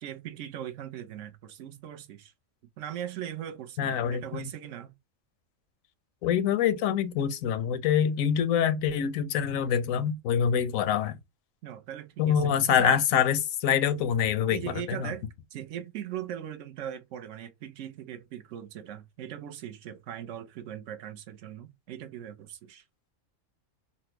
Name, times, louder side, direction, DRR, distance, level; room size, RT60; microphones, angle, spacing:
voice 1, 0.0-2.3 2.8-4.9 11.6-13.0 14.5-22.8, right 10 dB, 70° right, 0.9 m, -40 dB
voice 2, 3.8-4.2 6.2-11.2 12.2-15.1, left 8 dB, 90° left, 1.0 m, -25 dB
4.1 x 2.0 x 2.9 m
omnidirectional pair, 1.4 m